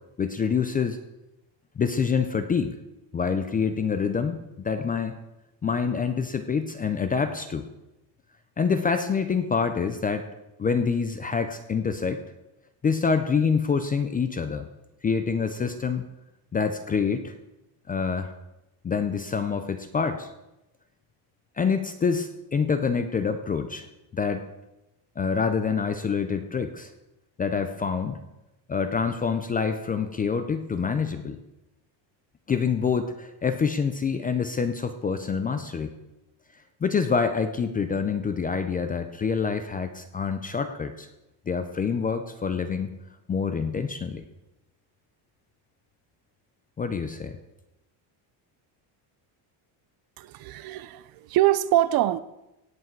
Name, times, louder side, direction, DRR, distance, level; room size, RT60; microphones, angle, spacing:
voice 1, 0.2-1.0 1.8-2.8 3.1-5.2 5.6-7.7 8.6-10.3 10.6-12.2 12.8-14.7 15.0-16.1 16.5-17.3 17.9-18.3 18.8-20.3 21.6-23.9 24.1-24.5 25.2-26.9 27.4-28.2 28.7-31.4 32.5-35.9 36.8-41.1 41.5-42.9 43.3-44.2 46.8-47.4, left 5 dB, 20° left, 9 dB, 0.3 m, -26 dB
voice 2, 50.2-52.2, right 14 dB, 50° right, 17 dB, 0.5 m, -24 dB
17.0 x 8.1 x 4.5 m, 0.94 s
cardioid pair, 175°, 46 cm